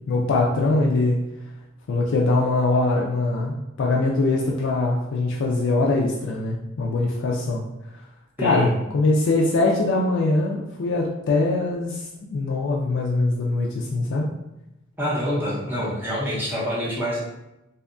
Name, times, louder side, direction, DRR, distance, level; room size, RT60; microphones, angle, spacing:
voice 1, 0.1-1.2 1.9-7.6 8.4-14.3, left 2 dB, 65° left, -2 dB, 0.3 m, -22 dB
voice 2, 15.0-17.2, equal, 10° right, -7 dB, 0.6 m, -26 dB
2.7 x 2.2 x 2.5 m, 0.91 s
head